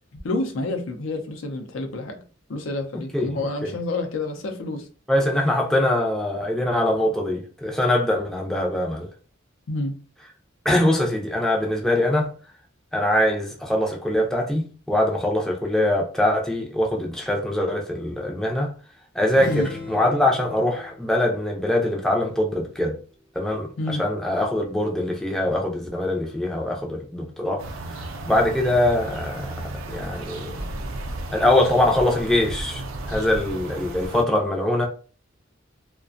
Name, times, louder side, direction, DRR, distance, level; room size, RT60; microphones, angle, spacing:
voice 1, 0.2-2.2 2.5-4.9 9.7-10.0 19.5-19.7 23.8-24.0, left 2 dB, 85° left, 0.5 m, -28 dB
voice 2, 3.1-3.7 5.1-9.1 10.7-12.3 12.9-18.7 19.1-23.0 23.4-27.6 27.9-29.5 29.9-30.6 31.3-34.9, left 1 dB, 5° left, 0.4 m, -23 dB
sound 1, 19.3-23.0, left 2 dB, 55° left, 0.8 m, -39 dB
sound 2, 27.6-34.2, right 2 dB, 85° right, 0.4 m, -34 dB
2.4 x 2.2 x 2.5 m
head